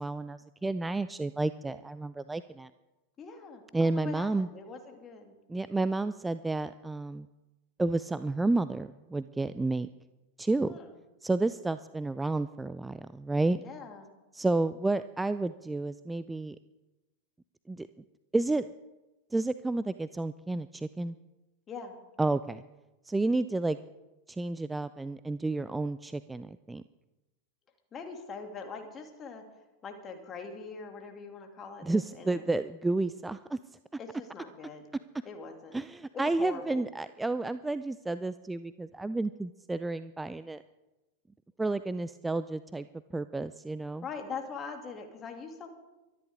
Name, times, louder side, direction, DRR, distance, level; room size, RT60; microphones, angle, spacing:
voice 1, 0.0-2.7 3.7-4.5 5.5-7.3 7.8-9.9 10.4-10.7 11.2-13.6 14.3-16.6 17.7-17.9 18.3-18.7 19.3-21.2 22.2-22.6 23.0-23.8 24.3-26.8 31.8-33.6 35.7-40.6 41.6-42.9 43.1-44.0, right 2 dB, 10° right, 14 dB, 0.4 m, -31 dB
voice 2, 3.2-5.3 10.7-11.0 13.6-14.1 21.7-22.0 27.9-29.4 29.8-32.4 34.0-34.9 35.2-35.8 36.1-36.8 44.0-45.7, left 5 dB, 25° left, 3 dB, 2.6 m, -42 dB
24.0 x 11.0 x 3.7 m, 1.1 s
figure-of-eight pair, 90°, 0 cm